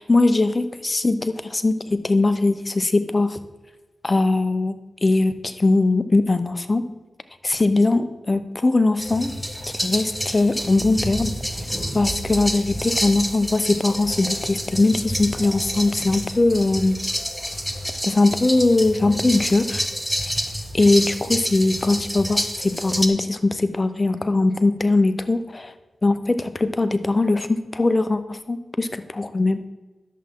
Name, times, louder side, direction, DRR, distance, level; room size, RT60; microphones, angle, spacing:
voice 1, 0.0-3.4 4.0-4.7 5.0-6.8 7.4-9.3 9.8-11.3 11.9-17.0 18.0-19.8 20.7-25.7 26.0-29.6, left 2 dB, 35° left, 11 dB, 0.8 m, -20 dB
sound 1, 9.0-23.1, equal, ahead, 1.2 m, -28 dB
11.0 x 7.4 x 3.8 m, 1.2 s
cardioid pair, 45°, 0 cm